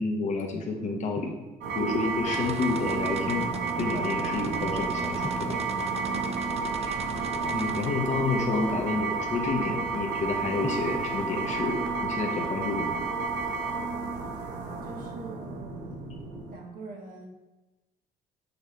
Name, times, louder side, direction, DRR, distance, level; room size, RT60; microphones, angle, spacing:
voice 1, 0.0-1.3 1.7-3.5 3.7-5.6 6.8-7.0 7.5-13.0, left 3 dB, 45° left, 1 dB, 1.0 m, -30 dB
Drum, 1.2-2.2 5.2-7.1 10.6-12.6, left 2 dB, 15° left, 0.7 m, -45 dB
voice 2, 1.6-1.9 6.1-6.8 14.8-16.1 16.5-17.3, right 3 dB, 55° right, -1 dB, 1.6 m, -44 dB
sound 1, 1.6-16.5, right 4 dB, 85° right, 0.9 m, -31 dB
sound 2, 2.2-7.9, right 6 dB, 40° right, 0.5 m, -38 dB
6.8 x 3.1 x 5.5 m, 1.1 s
cardioid pair, 110°, 17 cm